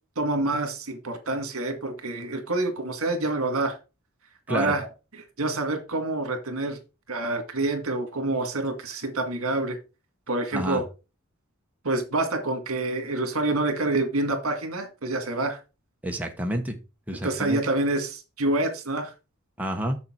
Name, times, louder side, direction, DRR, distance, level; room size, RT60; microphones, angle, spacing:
voice 1, 0.2-3.8 4.5-4.9 5.1-6.8 7.1-9.8 10.3-10.8 11.8-15.6 17.2-19.1, right 2 dB, 70° right, 2.0 m, -27 dB
voice 2, 16.0-16.8 17.1-17.6 19.6-20.0, right 1 dB, 5° right, 1.1 m, -29 dB
6.9 x 6.8 x 4.4 m
head